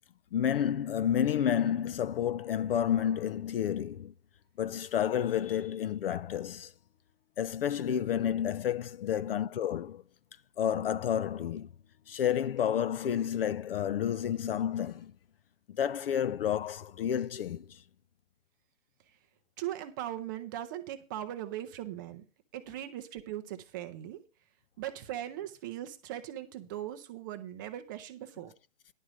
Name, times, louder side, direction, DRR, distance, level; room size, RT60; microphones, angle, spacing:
voice 1, 0.3-4.1 4.6-6.7 7.4-10.0 10.6-11.7 12.1-15.1 15.7-17.8, left 9 dB, 45° left, 0.4 m, -30 dB
voice 2, 19.6-22.2 22.5-24.2 24.8-28.5, right 12 dB, 15° right, 0.5 m, -39 dB
11.0 x 4.8 x 7.4 m
hypercardioid pair, 135°, 40 cm